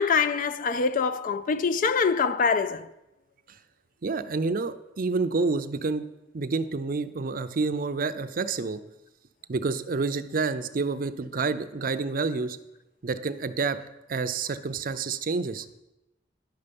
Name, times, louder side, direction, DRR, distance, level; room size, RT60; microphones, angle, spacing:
voice 1, 0.0-2.9, left 5 dB, 50° left, 0.4 m, -24 dB
voice 2, 4.0-6.0 6.3-8.8 9.5-12.6 13.0-13.8 14.1-15.7, right 4 dB, 50° right, 0.5 m, -28 dB
10.5 x 6.8 x 5.3 m
head